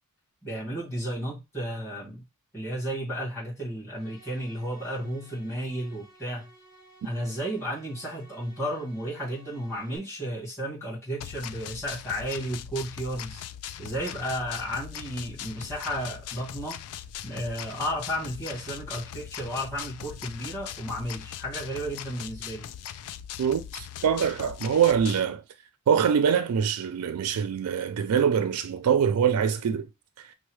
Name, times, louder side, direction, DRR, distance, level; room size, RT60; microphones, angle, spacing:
voice 1, 0.4-2.2 2.5-6.5 7.0-13.4 13.8-16.8 17.2-22.7, equal, 15° left, 1.9 m, -33 dB
sound 1, 3.9-10.0, right 1 dB, 40° left, 2.0 m, -55 dB
sound 2, 11.2-25.2, left 10 dB, 80° left, 0.3 m, -40 dB
voice 2, 23.4-25.4 25.9-29.9, right 7 dB, 85° right, 0.4 m, -24 dB
5.3 x 2.1 x 3.1 m
head